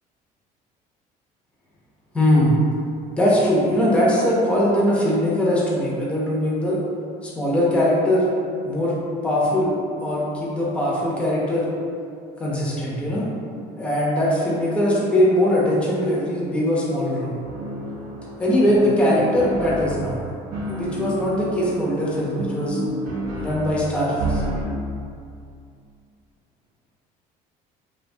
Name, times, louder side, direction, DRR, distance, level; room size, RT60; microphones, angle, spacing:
voice 1, 2.1-2.5 3.2-6.8 7.2-8.3 8.6-9.0 9.2-9.7 10.0-11.7 12.4-13.2 13.8-17.3 18.4-20.2 20.7-22.8 23.4-24.4, left 1 dB, 5° left, -7 dB, 0.5 m, -21 dB
sound 1, 17.4-24.7, right 1 dB, 65° right, 0.7 m, -30 dB
2.7 x 2.2 x 2.6 m, 2.4 s
cardioid pair, 130°, 16 cm